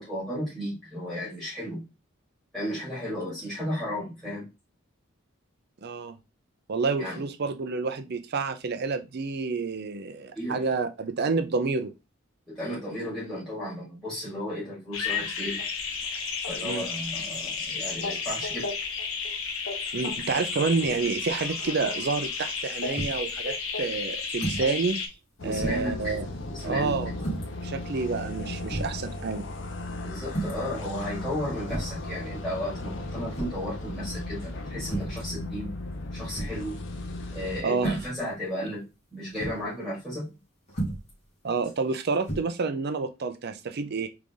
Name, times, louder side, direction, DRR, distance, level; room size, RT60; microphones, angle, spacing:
voice 1, 0.0-1.8 2.5-4.5 7.0-7.2 10.3-10.6 12.5-15.6 16.5-18.7 25.4-26.2 26.5-27.0 30.0-35.7 36.1-36.8 37.3-40.3, equal, ahead, 2.2 m, -34 dB
voice 2, 5.8-6.1 6.7-11.9 16.6-16.9 19.9-25.0 25.4-26.3 26.6-27.1 27.6-29.4 37.6-38.0 41.4-44.1, right 4 dB, 50° right, 0.5 m, -29 dB
sound 1, 14.9-25.1, left 5 dB, 90° left, 0.9 m, -32 dB
sound 2, 23.0-23.3 24.3-24.7 25.1-25.2 25.6-26.0 27.2-27.5 28.2-28.3 28.7-29.0 30.3-30.7 31.6-32.0 33.3-33.7 34.8-35.2 36.3-36.7 37.7-38.2 39.4-39.6 40.7-41.1 42.2-42.4, right 2 dB, 35° left, 1.8 m, -32 dB
sound 3, 25.4-37.6, left 2 dB, 65° left, 0.7 m, -36 dB
3.9 x 3.3 x 3.5 m
head